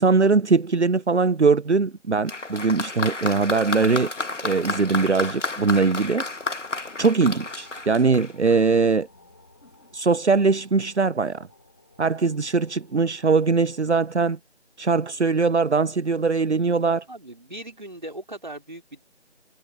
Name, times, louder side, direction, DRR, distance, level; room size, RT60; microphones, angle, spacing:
voice 1, 0.0-4.1 4.4-6.2 7.0-9.1 9.9-11.5 12.0-14.4 14.8-17.0, right 4 dB, 70° right, 0.8 m, -21 dB
Applause, 2.3-8.7 9.6-9.7, left 3 dB, 85° left, 1.9 m, -31 dB
sound 1, 5.6-14.2, left 2 dB, 15° left, 6.6 m, -56 dB
voice 2, 17.1-19.0, right 1 dB, 40° right, 2.9 m, -38 dB
figure-of-eight pair, 180°, 35 cm